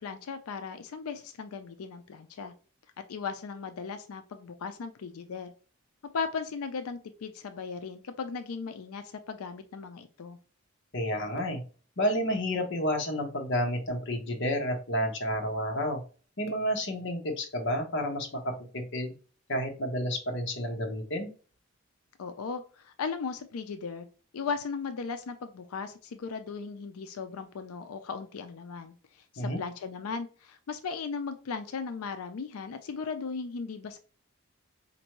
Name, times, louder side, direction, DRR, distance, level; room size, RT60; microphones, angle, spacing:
voice 1, 0.0-2.5 3.1-5.5 6.1-10.4 22.2-24.1 24.3-34.0, left 5 dB, 90° left, 9 dB, 0.4 m, -37 dB
voice 2, 10.9-11.6 12.0-16.0 16.4-19.1 19.5-21.3 29.4-29.6, equal, 55° left, 3 dB, 0.9 m, -30 dB
4.3 x 2.6 x 3.0 m, 0.37 s
head